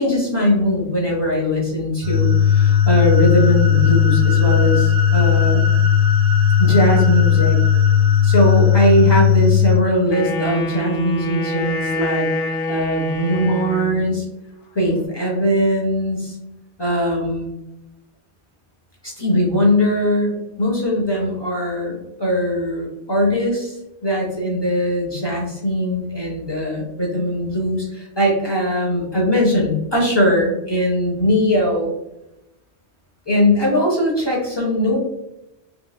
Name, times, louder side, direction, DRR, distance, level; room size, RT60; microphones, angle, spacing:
voice 1, 0.0-5.7 6.6-7.6 8.2-14.2 14.7-16.4 16.8-17.5 19.0-31.9 33.3-35.0, equal, 30° left, -2 dB, 0.6 m, -20 dB
sound 1, 2.0-9.8, left 8 dB, 65° right, 0.8 m, -16 dB
Wind instrument woodwind instrument, 10.1-14.1, equal, 65° left, 0.8 m, -25 dB
3.1 x 2.8 x 2.3 m, 0.88 s
omnidirectional pair, 1.1 m